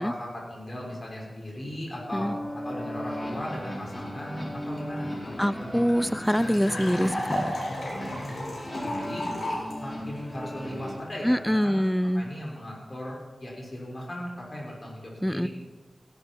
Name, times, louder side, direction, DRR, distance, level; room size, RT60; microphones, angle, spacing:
voice 1, 0.0-5.7 8.1-9.2 9.8-11.8 12.1-15.5, equal, 40° left, -3 dB, 6.2 m, -38 dB
sound 1, 2.1-10.9, equal, 20° left, 5.8 m, -37 dB
sound 2, 5.0-5.1 5.2-5.3 5.6-9.7, left 1 dB, 80° left, 5.0 m, -33 dB
voice 2, 5.4-7.5 11.2-12.2 15.2-15.5, equal, 5° left, 15 dB, 0.5 m, -25 dB
16.5 x 12.0 x 4.7 m, 1.2 s
cardioid pair, 55°, 0 cm